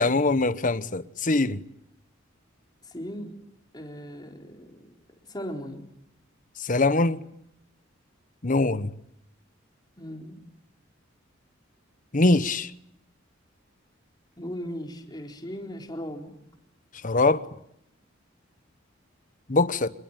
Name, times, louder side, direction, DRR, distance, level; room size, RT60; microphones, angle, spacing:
voice 1, 0.0-1.6 6.6-7.2 8.4-8.9 12.1-12.7 17.0-17.4 19.5-19.9, left 2 dB, 40° left, 1.1 m, -22 dB
voice 2, 2.8-3.3 3.7-4.9 5.3-5.9 10.0-10.4 14.4-16.3, equal, 20° left, 4.0 m, -37 dB
27.0 x 22.0 x 9.0 m
head